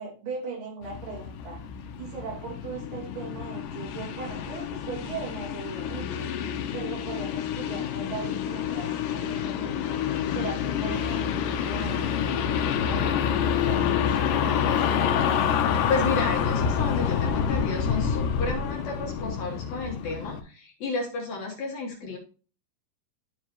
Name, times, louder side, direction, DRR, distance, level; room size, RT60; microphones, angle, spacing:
voice 1, 0.0-1.6 2.0-6.3 6.7-10.0 10.3-12.2 12.8-15.0, right 4 dB, 75° right, -1 dB, 3.9 m, -39 dB
sound 1, 0.8-20.4, left 7 dB, 90° left, 2.4 m, -28 dB
voice 2, 15.9-22.2, left 3 dB, 60° left, -1 dB, 2.3 m, -32 dB
12.0 x 4.6 x 2.9 m, 0.38 s
omnidirectional pair, 3.8 m